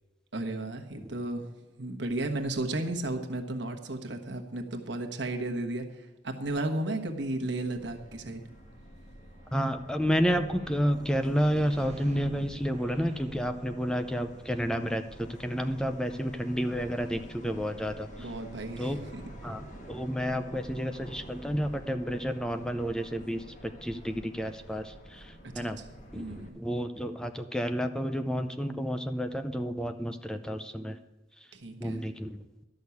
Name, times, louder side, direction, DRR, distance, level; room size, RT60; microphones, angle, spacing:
voice 1, 0.3-8.4 18.2-19.2 25.5-25.7 26.1-26.6 31.5-32.0, right 2 dB, 70° right, 4 dB, 1.3 m, -34 dB
Subway metro underground, 7.7-26.5, equal, 45° left, 1.7 m, -49 dB
sound 1, 9.3-14.8, right 1 dB, 40° right, 1.2 m, -49 dB
voice 2, 9.5-18.3 18.8-19.1 19.4-25.8 26.1-31.0 31.4-31.5 31.8-32.4, equal, 5° left, 7 dB, 0.5 m, -31 dB
12.0 x 6.4 x 8.4 m, 1.1 s
head